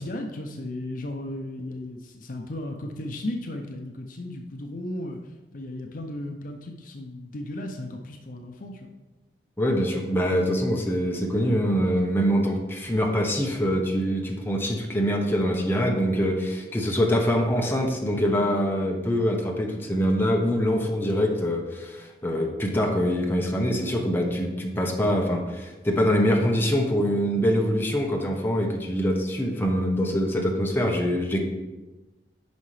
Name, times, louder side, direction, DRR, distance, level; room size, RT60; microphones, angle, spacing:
voice 1, 0.0-5.2 5.5-8.9, left 1 dB, 50° left, 3 dB, 0.6 m, -35 dB
voice 2, 9.6-31.4, equal, 10° left, 0 dB, 0.8 m, -24 dB
9.4 x 5.6 x 3.2 m, 1.2 s
head